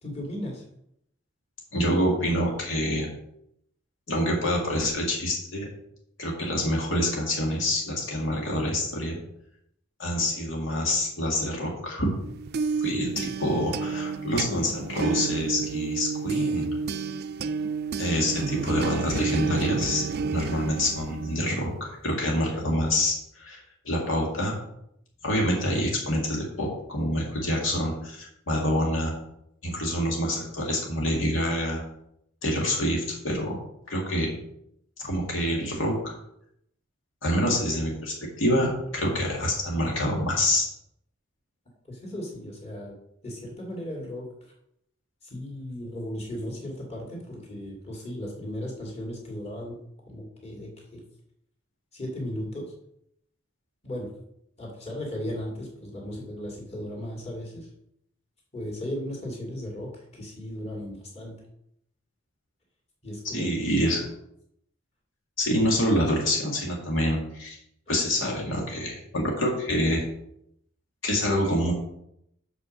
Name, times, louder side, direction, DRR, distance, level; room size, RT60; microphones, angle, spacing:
voice 1, 0.0-0.6 41.9-43.0 43.2-44.2 45.2-49.8 50.1-51.0 51.9-52.6 53.8-54.1 54.6-57.7 58.5-61.3 63.0-64.0 68.2-68.7, left 1 dB, 35° left, -2 dB, 2.7 m, -36 dB
voice 2, 1.7-3.1 4.1-5.7 6.2-9.2 10.0-12.1 12.8-16.7 18.0-20.0 20.3-24.5 25.2-29.1 29.6-31.8 32.4-33.6 33.9-34.3 35.0-36.1 37.2-40.7 63.3-64.1 65.4-67.6 67.9-70.0 71.0-71.7, equal, 85° left, -1 dB, 2.2 m, -26 dB
sound 1, 12.2-21.9, right 4 dB, 55° right, 0.4 m, -30 dB
6.3 x 6.0 x 6.5 m, 0.75 s
head